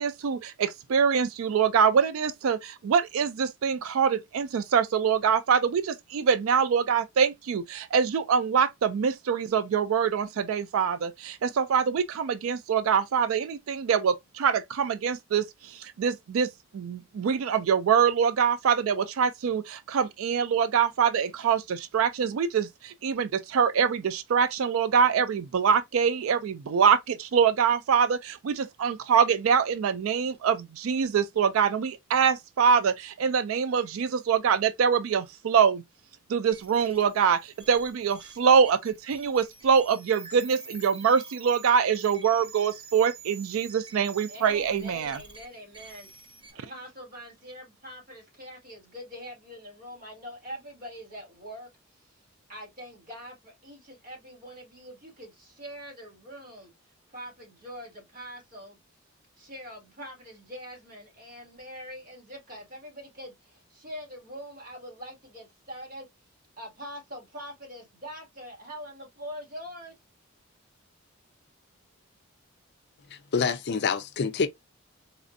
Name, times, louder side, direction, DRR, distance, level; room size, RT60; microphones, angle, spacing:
voice 1, 0.0-35.8 36.3-45.2, right 7 dB, 85° right, 0.4 m, -24 dB
sound 1, 36.5-46.5, right 4 dB, 25° right, 1.4 m, -48 dB
voice 2, 44.3-46.1 46.5-51.7 52.5-56.7 57.1-58.8 59.4-66.1 66.6-70.0, equal, 45° right, 2.1 m, -43 dB
voice 3, 73.1-74.5, left 5 dB, 55° left, 0.5 m, -27 dB
4.2 x 2.5 x 2.5 m
head